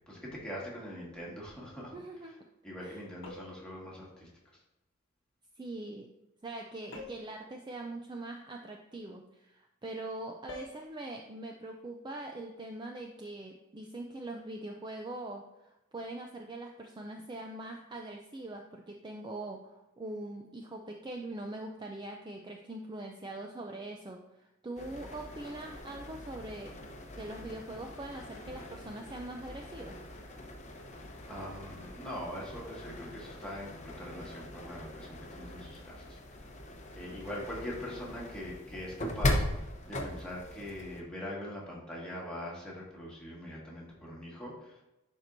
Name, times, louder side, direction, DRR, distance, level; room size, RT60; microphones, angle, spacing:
voice 1, 0.0-1.9 2.2-2.3 2.6-4.3 31.3-36.2 37.0-44.8, equal, 5° left, -5 dB, 1.8 m, -42 dB
voice 2, 1.9-2.3 2.8-3.0 5.6-6.1 6.4-24.2 24.6-26.8 27.2-30.0, right 2 dB, 20° right, 2 dB, 0.4 m, -42 dB
sound 1, 3.2-3.7 6.9-7.4 10.5-10.8, left 2 dB, 60° left, 1.1 m, -46 dB
sound 2, 24.8-41.0, left 1 dB, 35° left, 0.8 m, -40 dB
11.0 x 4.4 x 2.6 m, 0.94 s
head